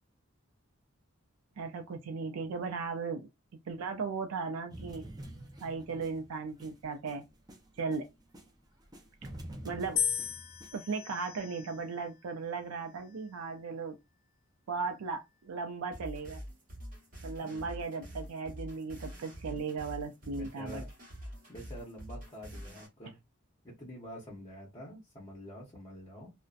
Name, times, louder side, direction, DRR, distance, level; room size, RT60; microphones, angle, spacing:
voice 1, 1.6-3.3 3.7-5.0 5.6-7.2 7.8-8.1 9.6-10.0 10.7-14.0 14.7-16.4 17.2-20.8, right 4 dB, 80° right, 0.4 m, -37 dB
sound 1, 4.7-8.5 8.8-10.7, right 1 dB, 15° right, 0.4 m, -47 dB
sound 2, 10.0-12.2 13.0-13.5, left 8 dB, 60° left, 0.4 m, -36 dB
sound 3, 15.9-22.9, equal, 40° right, 0.9 m, -45 dB
voice 2, 20.2-20.9 21.5-23.2 23.6-26.3, equal, 25° left, 0.7 m, -47 dB
2.6 x 2.1 x 2.3 m
head